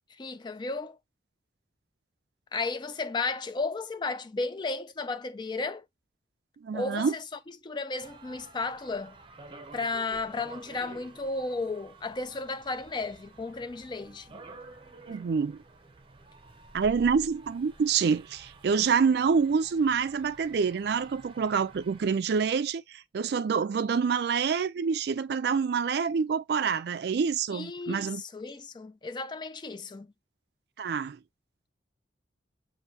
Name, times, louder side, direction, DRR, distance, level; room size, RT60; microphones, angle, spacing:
voice 1, 0.2-1.0 2.5-5.8 6.7-7.2 7.6-9.2 9.7-14.4 27.5-30.1, left 3 dB, 25° left, 0.4 m, -34 dB
voice 2, 6.6-7.1 15.1-15.6 16.7-28.2 30.8-31.2, right 6 dB, 60° right, 0.3 m, -27 dB
sound 1, 8.0-22.1, right 3 dB, 30° right, 0.7 m, -50 dB
6.8 x 2.7 x 2.7 m
head